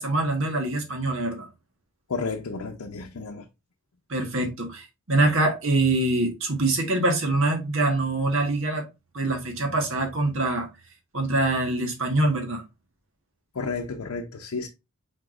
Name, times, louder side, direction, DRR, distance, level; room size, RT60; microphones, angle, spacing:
voice 1, 0.0-1.5 4.1-8.9 9.1-10.7 11.1-12.6, right 2 dB, 60° right, 1.5 m, -24 dB
voice 2, 2.1-3.5 13.5-14.7, left 4 dB, 75° left, 0.6 m, -32 dB
4.8 x 4.4 x 2.4 m
head